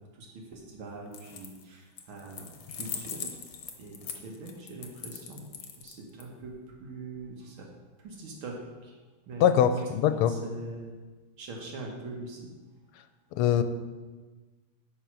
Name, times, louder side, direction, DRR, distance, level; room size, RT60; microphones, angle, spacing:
voice 1, 0.1-3.3 3.8-5.5 5.8-7.7 8.0-9.0 9.3-9.6 10.1-11.0 11.4-12.5, right 2 dB, 70° right, 0 dB, 1.9 m, -43 dB
sound 1, 1.1-1.6 2.0-6.2, left 7 dB, 65° left, 1.4 m, -41 dB
voice 2, 9.4-10.4 13.3-13.6, left 9 dB, 80° left, 10 dB, 1.5 m, -23 dB
10.5 x 4.3 x 6.2 m, 1.3 s
omnidirectional pair, 2.4 m